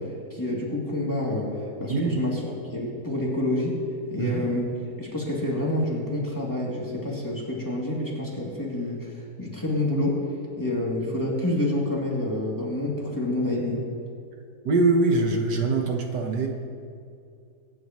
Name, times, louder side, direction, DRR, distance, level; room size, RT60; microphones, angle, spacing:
voice 1, 0.0-2.3 2.7-3.8 4.1-4.6 5.0-10.2 10.6-13.8, left 1 dB, 10° left, -5 dB, 2.8 m, -28 dB
voice 2, 1.9-2.2 4.2-4.5 14.6-16.5, right 3 dB, 75° right, 2 dB, 1.8 m, -23 dB
23.0 x 10.5 x 3.1 m, 2.4 s
omnidirectional pair, 1.8 m